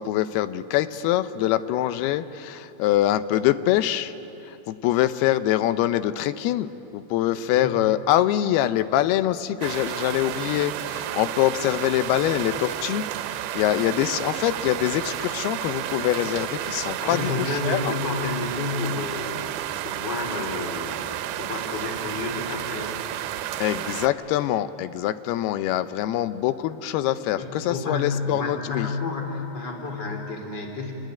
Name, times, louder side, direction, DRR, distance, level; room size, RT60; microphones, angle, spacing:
voice 1, 0.0-4.1 4.4-17.9 23.6-28.9, left 13 dB, 90° left, 12 dB, 2.8 m, -24 dB
voice 2, 7.3-7.7 17.0-19.4 19.8-21.0 21.4-23.0 27.4-30.9, left 3 dB, 30° left, 2 dB, 3.3 m, -30 dB
sound 1, 9.6-24.1, right 12 dB, 80° right, 2.7 m, -31 dB
28.5 x 20.0 x 9.4 m, 2.9 s
omnidirectional pair, 4.4 m